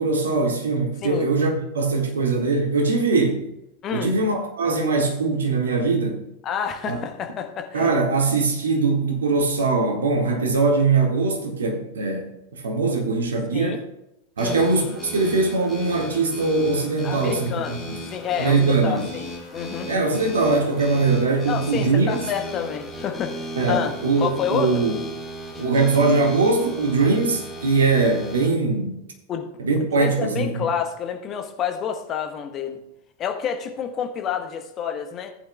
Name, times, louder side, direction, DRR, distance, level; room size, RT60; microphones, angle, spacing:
voice 1, 0.0-3.4 3.9-6.2 6.9-7.0 7.7-13.8 14.4-18.0 18.4-19.1 19.9-22.2 23.6-24.9 25.6-28.9 29.6-30.7, right 3 dB, 65° right, 2 dB, 1.8 m, -21 dB
voice 2, 3.8-4.1 6.4-7.9 13.5-13.8 14.4-14.7 17.0-17.7 18.0-19.9 21.4-23.4 23.7-24.9 29.3-29.5 29.8-32.8 33.2-35.3, left 8 dB, 30° left, 5 dB, 1.2 m, -29 dB
sound 1, 14.4-28.5, equal, 15° left, 2.5 m, -36 dB
15.0 x 8.7 x 2.3 m, 0.88 s
figure-of-eight pair, 90°, 0 cm